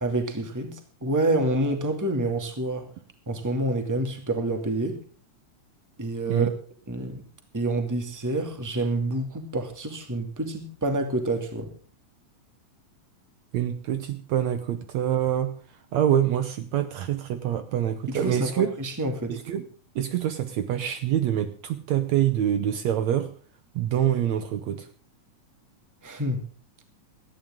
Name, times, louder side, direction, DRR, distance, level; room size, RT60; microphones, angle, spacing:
voice 1, 0.0-2.9 3.3-5.0 6.0-6.5 6.9-7.2 7.5-11.7 18.1-19.4 26.0-26.4, right 2 dB, 5° right, 6 dB, 1.8 m, -28 dB
voice 2, 13.5-15.5 15.9-18.7 19.3-19.7 20.0-23.3 23.8-24.9, right 10 dB, 70° right, 10 dB, 2.0 m, -25 dB
18.0 x 14.0 x 3.7 m, 0.42 s
omnidirectional pair, 3.6 m